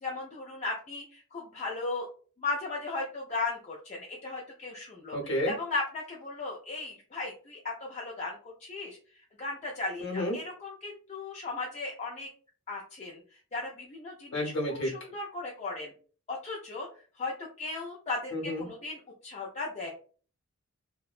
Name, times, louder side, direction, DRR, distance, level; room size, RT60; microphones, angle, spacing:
voice 1, 0.0-2.1 2.4-12.3 12.7-13.2 13.5-14.5 14.8-15.9 16.3-16.9 17.2-19.9, left 3 dB, 30° left, -2 dB, 0.3 m, -36 dB
voice 2, 5.1-5.5 10.0-10.4 14.3-14.9 18.3-18.7, left 1 dB, 50° left, 0 dB, 0.9 m, -30 dB
2.7 x 2.1 x 2.3 m, 0.40 s
head